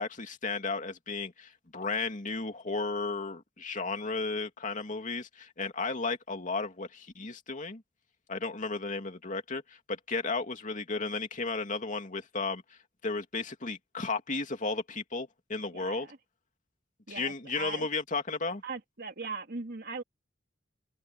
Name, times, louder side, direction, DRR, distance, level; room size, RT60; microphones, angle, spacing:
voice 1, 0.0-7.8 8.3-12.6 13.0-16.1 17.1-18.6, left 3 dB, 45° left, 2.6 m, -34 dB
voice 2, 15.7-16.2 17.1-17.9 18.6-20.0, right 4 dB, 55° right, 2.2 m, -39 dB
head